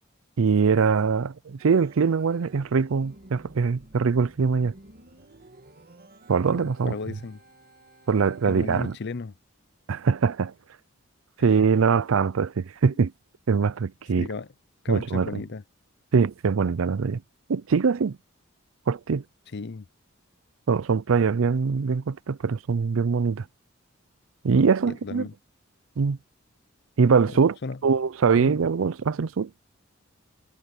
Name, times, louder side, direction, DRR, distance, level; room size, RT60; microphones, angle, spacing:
voice 1, 0.4-4.7 6.3-6.9 8.1-8.9 9.9-10.5 11.4-13.1 13.5-14.3 14.9-15.4 16.1-17.2 17.5-18.2 18.9-19.2 20.7-23.4 24.4-25.2 26.0-26.2 27.0-27.6 27.8-29.5, right 5 dB, 75° right, 0.5 m, -22 dB
Organ, 1.6-8.9, right 1 dB, 50° right, 2.0 m, -52 dB
voice 2, 6.5-7.4 8.4-9.3 11.4-11.5 14.2-14.5 14.8-15.6 19.5-19.9 24.9-25.3 27.3-27.8 28.4-28.5, left 4 dB, 55° left, 0.6 m, -35 dB
head